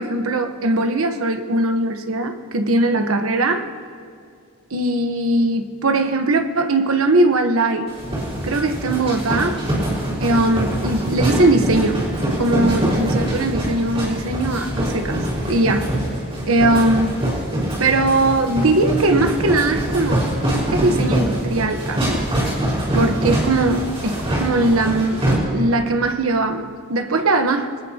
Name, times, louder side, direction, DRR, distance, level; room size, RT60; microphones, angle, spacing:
voice 1, 0.0-3.7 4.7-7.9 8.4-9.6 10.2-12.0 12.4-15.9 16.5-17.2 17.8-20.3 20.7-22.2 22.9-25.2 25.5-27.7, right 2 dB, 75° right, 6 dB, 1.1 m, -20 dB
sound 1, 7.9-25.3, right 1 dB, 25° right, 5.1 m, -23 dB
24.5 x 19.0 x 2.9 m, 2.3 s
head